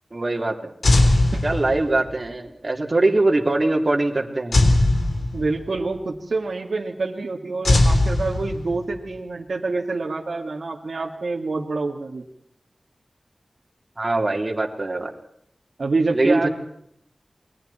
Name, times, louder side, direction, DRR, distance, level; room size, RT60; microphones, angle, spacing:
voice 1, 0.1-0.7 1.4-4.6 14.0-15.1 16.1-16.5, right 2 dB, 40° right, 1 dB, 3.6 m, -22 dB
sound 1, 0.8-2.1 4.5-5.8 7.6-8.9, left 2 dB, 80° left, 3.6 m, -19 dB
voice 2, 5.3-12.2 15.8-16.5, right 3 dB, 75° right, 0 dB, 2.2 m, -26 dB
28.5 x 22.5 x 4.4 m, 0.73 s
wide cardioid pair, 70°, 0 cm